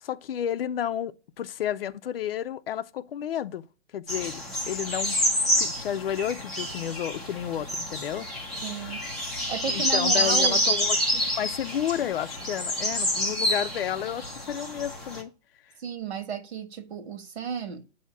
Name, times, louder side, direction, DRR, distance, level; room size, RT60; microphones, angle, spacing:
voice 1, 0.0-3.6 3.9-5.2 5.6-8.3 8.8-8.9 9.7-15.3, left 10 dB, 55° left, 0.5 m, -31 dB
sound 1, 4.1-15.2, equal, ahead, 0.6 m, -28 dB
voice 2, 8.6-9.0 9.5-10.6 15.8-17.8, right 6 dB, 65° right, 1.5 m, -33 dB
8.0 x 2.8 x 5.7 m
hypercardioid pair, 150°, 35 cm